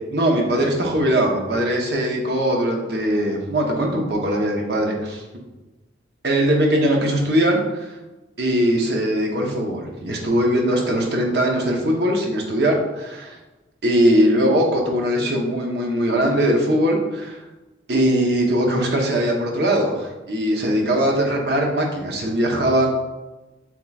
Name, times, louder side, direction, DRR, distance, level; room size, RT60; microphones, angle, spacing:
voice 1, 0.1-5.2 6.2-8.0 8.4-13.4 13.8-17.4 17.9-22.9, equal, 60° right, 0 dB, 0.9 m, -20 dB
7.2 x 3.0 x 2.4 m, 1.1 s
head